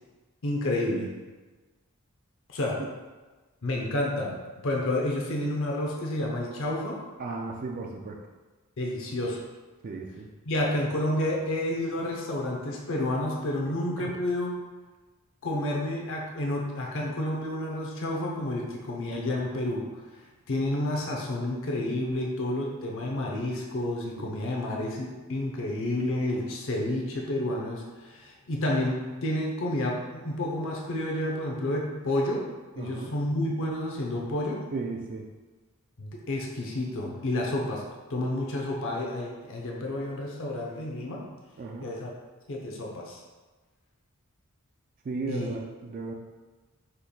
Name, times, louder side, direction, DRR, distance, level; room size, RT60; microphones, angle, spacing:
voice 1, 0.4-1.1 2.5-2.8 3.6-4.4 4.6-7.0 8.8-9.4 10.4-14.5 15.4-19.9 20.2-32.5 32.7-34.6 36.0-37.8 38.1-41.2 41.8-42.1 42.5-43.2 45.3-45.6, left 1 dB, 60° left, -1 dB, 0.7 m, -30 dB
voice 2, 7.2-8.2 9.8-10.3 14.0-14.1 24.2-24.3 32.8-33.1 34.7-35.2 41.6-41.9 45.1-46.1, right 3 dB, 40° right, 1 dB, 0.3 m, -35 dB
5.1 x 4.3 x 2.3 m, 1.3 s
head